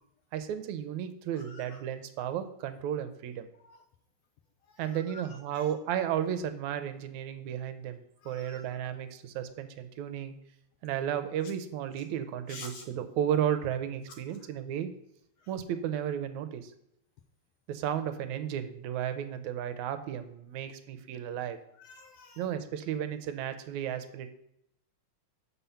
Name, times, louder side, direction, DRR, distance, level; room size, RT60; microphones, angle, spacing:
voice 1, 0.3-3.5 4.8-10.3 10.8-14.9 15.5-16.7 17.7-21.6 22.4-24.3, right 9 dB, 85° right, 10 dB, 2.0 m, -33 dB
voice 2, 1.3-1.8 3.6-3.8 4.7-5.7 8.2-8.7 12.5-12.8 15.4-15.5 21.8-22.4, left 3 dB, 80° left, 7 dB, 1.5 m, -49 dB
6.9 x 5.6 x 5.6 m, 0.76 s
omnidirectional pair, 3.4 m